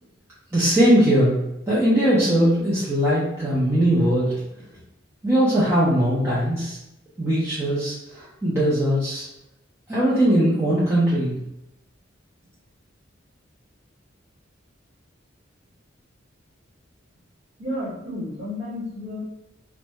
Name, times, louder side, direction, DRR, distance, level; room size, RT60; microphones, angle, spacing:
voice 1, 0.5-1.4 1.7-4.3 5.2-6.8 7.2-9.3 9.9-11.3, equal, 15° right, -10 dB, 0.5 m, -20 dB
voice 2, 17.6-19.2, left 1 dB, 40° right, -7 dB, 1.1 m, -31 dB
2.2 x 2.1 x 2.8 m, 0.87 s
head